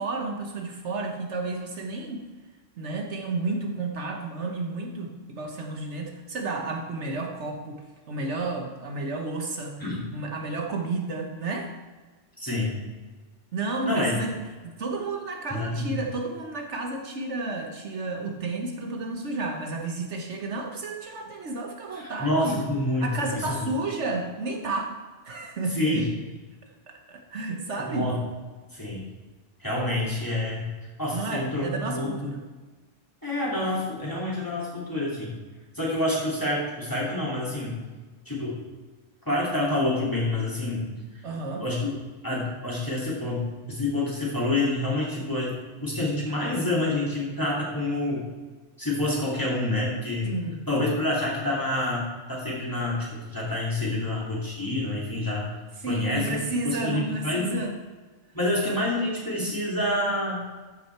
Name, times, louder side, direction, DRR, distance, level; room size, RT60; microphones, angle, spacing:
voice 1, 0.0-2.3 2.8-9.8 10.1-11.7 13.5-14.3 14.6-22.6 23.0-24.9 25.2-26.1 26.9-28.1 31.1-32.4 41.2-41.7 50.2-50.6 55.8-57.7, right 2 dB, 65° right, 2 dB, 1.3 m, -31 dB
voice 2, 12.4-12.8 13.8-14.2 15.5-15.9 21.9-23.7 25.7-26.1 27.8-28.2 28.7-29.0 29.6-30.7 31.0-32.3 33.2-35.3 35.7-37.8 38.3-38.6 39.3-40.9 41.6-48.3 48.8-50.3 50.7-55.5 55.9-57.6 58.3-60.5, left 1 dB, 15° left, -6 dB, 2.7 m, -28 dB
13.0 x 6.0 x 4.5 m, 1.3 s
omnidirectional pair, 1.3 m